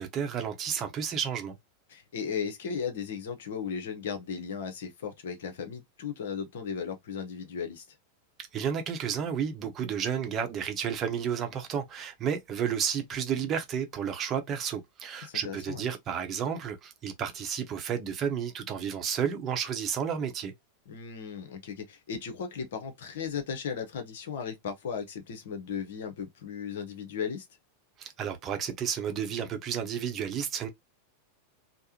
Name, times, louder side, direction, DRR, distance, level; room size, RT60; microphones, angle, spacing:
voice 1, 0.0-1.5 8.5-20.5 28.0-30.7, right 8 dB, 30° right, 0.7 m, -32 dB
voice 2, 1.9-8.0 15.2-15.9 20.9-27.5, left 6 dB, 60° left, 0.8 m, -36 dB
3.4 x 2.1 x 2.8 m
figure-of-eight pair, 90°, 0 cm